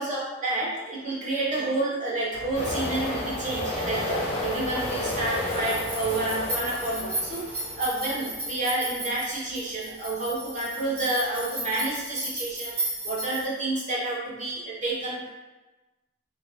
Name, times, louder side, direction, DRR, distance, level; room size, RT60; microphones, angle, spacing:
voice 1, 0.0-15.3, right 2 dB, 35° right, -6 dB, 0.9 m, -29 dB
sound 1, 2.3-13.4, right 1 dB, 90° right, 1.5 m, -36 dB
sound 2, 2.5-8.3, left 1 dB, 30° left, 0.5 m, -31 dB
2.9 x 2.4 x 3.0 m, 1.1 s
head